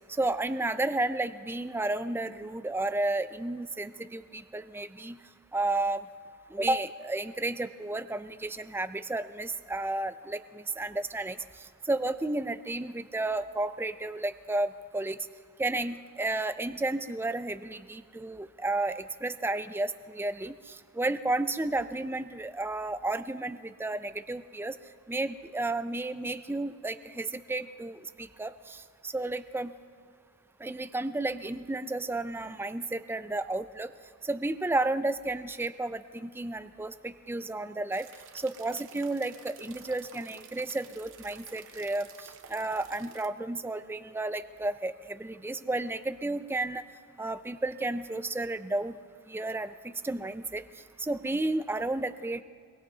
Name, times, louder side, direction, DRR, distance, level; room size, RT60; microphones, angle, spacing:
voice 1, 0.1-5.2 5.5-6.1 6.5-15.3 15.6-24.8 25.1-29.7 30.6-33.9 34.2-38.1 38.3-46.8 47.2-49.0 49.3-50.6 51.0-52.4, right 2 dB, 10° right, 12 dB, 0.3 m, -32 dB
sound 1, 37.9-43.3, right 7 dB, 60° right, 0.8 m, -51 dB
22.5 x 22.5 x 2.7 m, 2.2 s
head